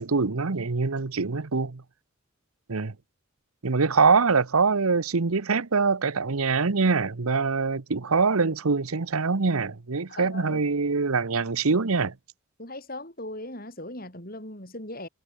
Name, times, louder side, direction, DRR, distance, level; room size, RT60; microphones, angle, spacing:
voice 1, 0.0-1.8 2.7-2.9 3.6-12.1, right 4 dB, 85° right, 1.0 m, -24 dB
voice 2, 10.1-10.6 12.6-15.1, left 1 dB, 40° left, 7.9 m, -38 dB
head